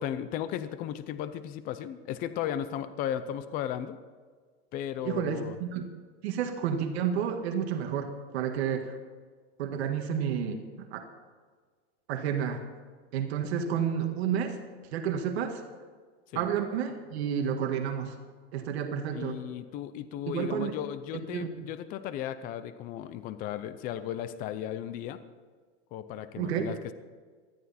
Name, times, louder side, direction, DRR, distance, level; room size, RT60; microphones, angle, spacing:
voice 1, 0.0-4.0 4.7-5.6 16.3-16.5 19.1-25.2 25.9-26.9, left 10 dB, 25° left, 12 dB, 0.6 m, -35 dB
voice 2, 5.0-5.8 6.2-9.0 9.6-11.1 12.1-12.7 13.1-14.6 14.9-15.6 16.4-18.2 18.5-19.4 20.3-20.7 21.3-21.5 26.4-26.7, right 8 dB, 60° right, 5 dB, 1.8 m, -30 dB
19.0 x 13.5 x 4.2 m, 1.5 s
supercardioid pair, 155°, 35 cm